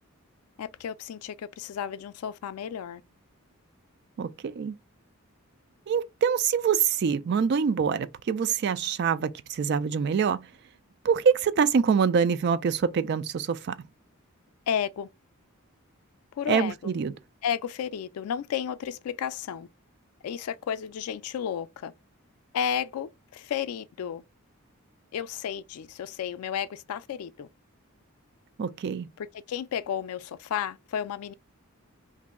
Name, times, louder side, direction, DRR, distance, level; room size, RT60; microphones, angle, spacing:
voice 1, 0.6-3.0 14.7-15.1 16.4-16.9 17.4-19.7 20.2-21.9 22.5-24.2 25.1-27.5 29.2-31.3, left 8 dB, 85° left, 0.3 m, -32 dB
voice 2, 4.2-4.8 5.9-10.4 11.0-13.8 16.5-17.1 28.6-29.1, right 6 dB, 50° right, 0.3 m, -25 dB
3.0 x 2.6 x 3.5 m
head